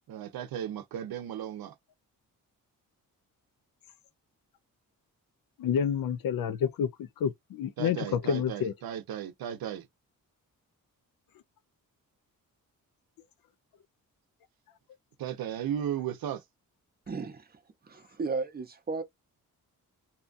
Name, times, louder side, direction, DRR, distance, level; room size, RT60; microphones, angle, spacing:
voice 1, 0.1-1.7 7.8-9.9 15.2-16.4, right 10 dB, 85° right, 0.7 m, -35 dB
voice 2, 5.6-8.7, left 8 dB, 70° left, 0.6 m, -29 dB
voice 3, 17.1-19.0, right 4 dB, 25° right, 0.6 m, -35 dB
2.8 x 2.3 x 2.4 m
wide cardioid pair, 150°, 35 cm